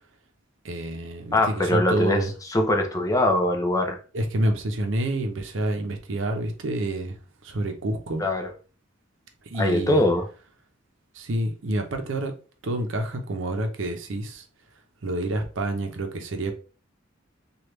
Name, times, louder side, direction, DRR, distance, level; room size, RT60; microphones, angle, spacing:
voice 1, 0.6-2.3 4.1-8.2 9.4-10.0 11.1-12.3 12.6-14.4 15.0-16.5, right 1 dB, 75° right, 0.6 m, -28 dB
voice 2, 1.3-2.2 2.5-4.0 8.2-8.5 9.6-10.2, left 1 dB, 15° left, 0.4 m, -22 dB
3.3 x 2.4 x 3.0 m
head